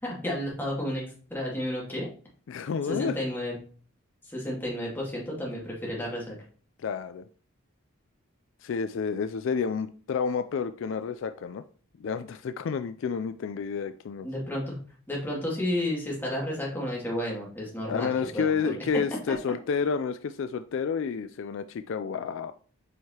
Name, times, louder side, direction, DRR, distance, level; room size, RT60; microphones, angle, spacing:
voice 1, 0.0-2.1 2.9-3.6 4.2-6.4 14.2-14.8 15.1-18.7 19.3-19.4, left 1 dB, 10° left, -4 dB, 2.1 m, -32 dB
voice 2, 2.5-3.2 6.8-7.3 8.6-11.6 12.0-14.3 17.9-22.5, left 6 dB, 65° left, 11 dB, 0.3 m, -30 dB
7.9 x 4.8 x 2.8 m, 0.43 s
head